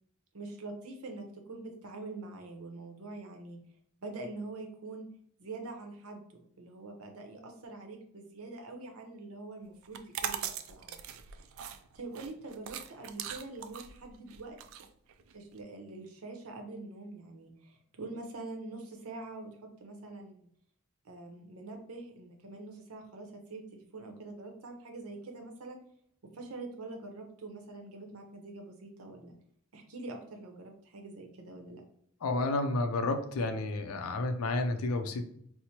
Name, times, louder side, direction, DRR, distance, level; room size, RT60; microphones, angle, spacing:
voice 1, 0.3-3.6 4.0-5.1 5.4-11.5 11.9-14.6 15.3-20.5 21.0-25.8 26.2-29.4 29.7-31.8, right 2 dB, 90° right, 3 dB, 0.7 m, -45 dB
sound 1, 9.8-15.6, right 9 dB, 70° right, 0.3 m, -40 dB
voice 2, 32.2-35.2, left 2 dB, 85° left, 6 dB, 0.4 m, -31 dB
4.3 x 2.0 x 2.8 m, 0.68 s
head